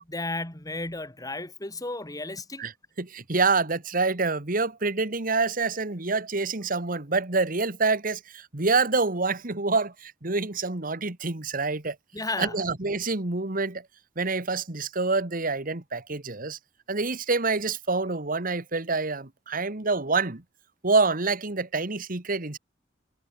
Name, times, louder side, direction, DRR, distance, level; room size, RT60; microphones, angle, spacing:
voice 1, 0.0-2.6 12.1-12.6, left 2 dB, 20° left, 2.9 m, -34 dB
voice 2, 3.0-12.0 12.4-13.8 14.2-16.6 16.9-20.4 20.8-22.6, right 3 dB, 50° right, 1.8 m, -27 dB
head